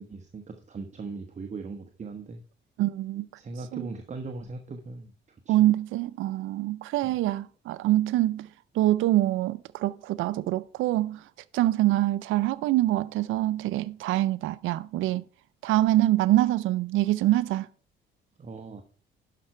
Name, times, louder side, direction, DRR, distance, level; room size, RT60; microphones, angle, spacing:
voice 1, 0.0-2.4 3.4-5.6 7.0-7.1 18.4-18.8, right 3 dB, 35° right, 1.1 m, -39 dB
voice 2, 2.8-3.3 3.7-3.9 5.5-8.5 8.7-11.3 11.5-15.2 15.6-17.7, right 15 dB, 85° right, 0.4 m, -25 dB
11.5 x 5.8 x 4.3 m
cardioid pair, 90°, 20 cm